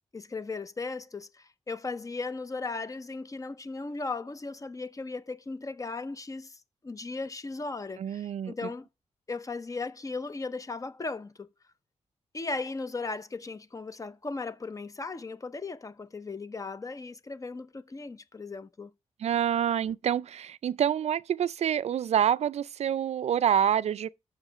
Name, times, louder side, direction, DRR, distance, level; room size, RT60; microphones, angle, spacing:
voice 1, 0.1-8.9 9.3-11.5 12.3-18.9, left 3 dB, 30° left, 0.7 m, -37 dB
voice 2, 8.0-8.5 19.2-24.1, right 9 dB, 65° right, 0.4 m, -27 dB
6.3 x 4.8 x 6.4 m
cardioid pair, 90°, 12 cm